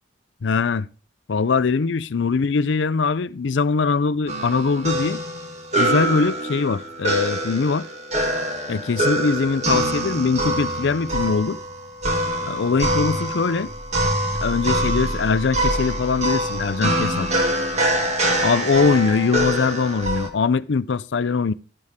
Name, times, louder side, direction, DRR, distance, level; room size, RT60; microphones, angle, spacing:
voice 1, 0.4-0.9 1.3-5.2 5.8-7.9 8.7-11.6 12.5-13.7 14.4-17.3 18.4-21.5, left 4 dB, 65° left, 0.5 m, -22 dB
sound 1, 4.3-20.3, right 1 dB, 35° right, 2.0 m, -24 dB
12.5 x 10.5 x 3.6 m
head